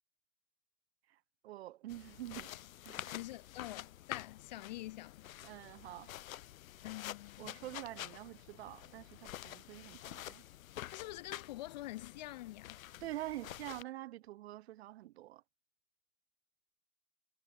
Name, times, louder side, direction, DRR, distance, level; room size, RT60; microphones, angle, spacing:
voice 1, 1.4-2.6 2.8-3.1 5.4-6.1 7.4-10.4 13.0-15.4, right 15 dB, 50° right, 0.6 m, -46 dB
sound 1, 1.9-13.8, left 13 dB, 70° left, 1.6 m, -48 dB
voice 2, 3.1-5.2 6.8-7.7 10.9-12.8, left 17 dB, 30° left, 0.6 m, -46 dB
supercardioid pair, 175°, 42 cm